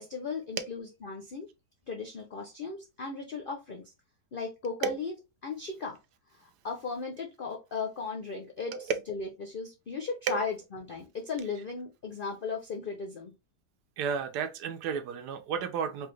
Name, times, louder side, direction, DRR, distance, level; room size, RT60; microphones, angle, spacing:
voice 1, 0.0-1.5 1.9-3.9 4.3-5.1 5.4-6.0 6.4-8.7 9.1-13.3, left 4 dB, 65° left, 0.5 m, -36 dB
voice 2, 14.0-16.1, right 6 dB, 80° right, 1.2 m, -32 dB
4.7 x 2.3 x 3.1 m
omnidirectional pair, 1.7 m